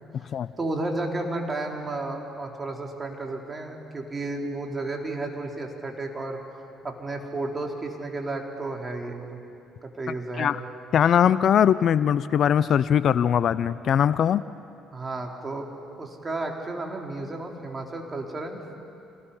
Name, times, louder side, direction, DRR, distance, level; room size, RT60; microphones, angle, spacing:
voice 1, 0.6-6.4 6.8-9.4 9.8-10.5 14.9-15.7 16.0-18.7, right 2 dB, 30° right, 1 dB, 3.8 m, -32 dB
voice 2, 10.9-14.4, left 9 dB, 55° left, 16 dB, 0.5 m, -21 dB
28.0 x 19.5 x 5.6 m, 2.6 s
hypercardioid pair, 60°, 0 cm